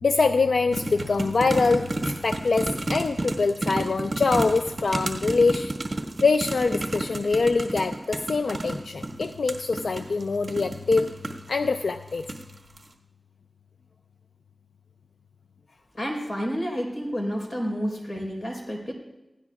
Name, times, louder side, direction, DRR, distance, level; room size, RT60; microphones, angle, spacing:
voice 1, 0.0-5.7 6.2-11.1 11.5-12.2, left 4 dB, 85° left, 8 dB, 0.4 m, -24 dB
sound 1, 0.7-11.5 12.1-12.5 12.8-12.9, right 2 dB, 45° right, 1.7 m, -31 dB
voice 2, 15.9-18.9, equal, 55° left, 0 dB, 4.3 m, -30 dB
29.0 x 16.5 x 2.4 m, 1.0 s
wide cardioid pair, 75°, 0 cm